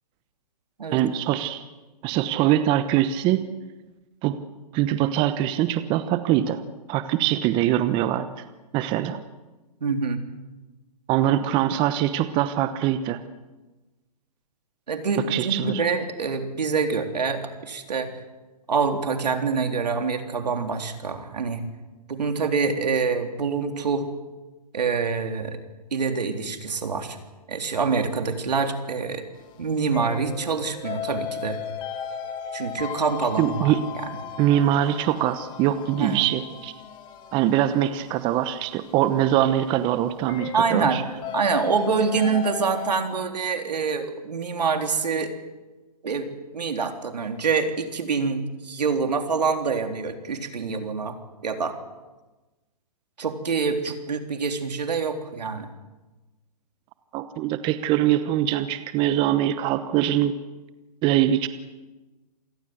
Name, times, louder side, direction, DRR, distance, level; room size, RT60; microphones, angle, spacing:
voice 1, 0.9-1.6 2.0-3.4 4.2-4.4 4.7-6.6 6.9-8.4 8.7-9.2 11.1-13.2 15.3-15.8 33.4-33.8 34.4-36.7 37.3-41.0 57.1-60.4 61.0-61.5, right 12 dB, 25° right, 12 dB, 1.0 m, -23 dB
voice 2, 9.8-10.2 14.9-18.1 18.7-21.6 22.1-24.1 24.7-25.6 25.9-27.2 27.5-29.2 29.6-31.6 32.5-33.7 36.0-36.3 40.5-41.1 41.3-45.3 46.0-51.1 51.4-51.8 53.2-55.7, right 5 dB, 80° right, 6 dB, 3.6 m, -26 dB
sound 1, 29.4-43.0, left 8 dB, 20° left, 2.6 m, -36 dB
27.5 x 20.0 x 8.0 m, 1.2 s
hypercardioid pair, 145°, 21 cm